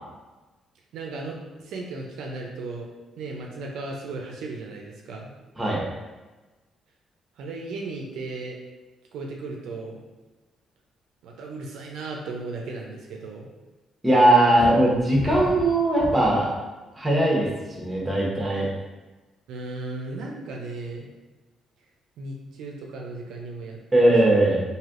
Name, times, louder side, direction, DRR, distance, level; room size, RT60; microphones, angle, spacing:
voice 1, 0.9-2.9 3.2-5.3 7.4-8.6 9.1-10.0 11.2-13.5 19.5-21.1 22.2-24.6, right 3 dB, 85° right, 0 dB, 0.4 m, -36 dB
voice 2, 14.0-16.5 17.0-17.5 17.8-18.7 23.9-24.6, right 1 dB, 15° right, -3 dB, 0.9 m, -19 dB
sound 1, 14.6-16.5 17.2-17.6, equal, 25° left, 1.4 m, -34 dB
3.2 x 2.6 x 2.5 m, 1.2 s
cardioid pair, 90°, 0 cm